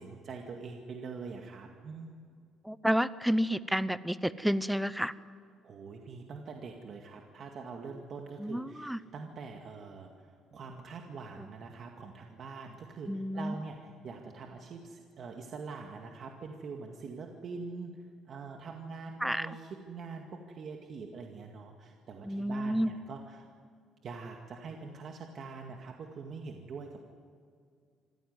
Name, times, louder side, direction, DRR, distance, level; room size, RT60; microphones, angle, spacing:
voice 1, 0.0-2.1 5.6-17.9 18.3-23.5 24.0-27.1, right 4 dB, 45° right, 2 dB, 2.0 m, -44 dB
voice 2, 2.6-5.1 8.4-9.0 11.4-11.5 13.1-13.6 19.2-19.5 22.2-22.9, equal, ahead, 16 dB, 0.7 m, -30 dB
26.0 x 15.5 x 9.6 m, 2.2 s
cardioid pair, 135°, 0 cm